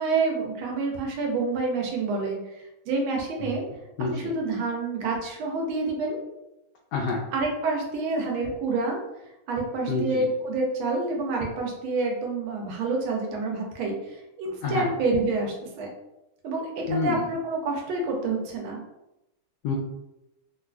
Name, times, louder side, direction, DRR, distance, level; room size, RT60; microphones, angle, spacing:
voice 1, 0.0-2.6 2.9-3.6 4.1-6.2 7.3-9.0 9.5-15.9 16.4-18.8, right 3 dB, 85° right, 1 dB, 1.5 m, -28 dB
voice 2, 4.0-4.3 6.9-7.2 9.9-10.2 14.6-14.9 16.9-17.2 19.6-19.7, left 4 dB, 85° left, -2 dB, 0.8 m, -27 dB
3.7 x 2.4 x 2.3 m, 0.91 s
omnidirectional pair, 2.3 m